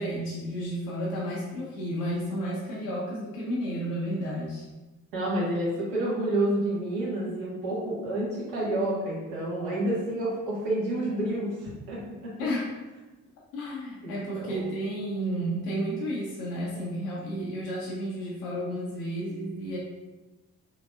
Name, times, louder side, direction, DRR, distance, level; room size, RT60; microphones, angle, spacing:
voice 1, 0.0-4.6 12.4-12.8 13.5-19.8, equal, 80° left, -5 dB, 0.7 m, -32 dB
voice 2, 5.1-12.3 14.0-14.6, right 1 dB, 65° right, -6 dB, 1.4 m, -29 dB
3.8 x 3.2 x 2.3 m, 1.1 s
figure-of-eight pair, 40°, 46 cm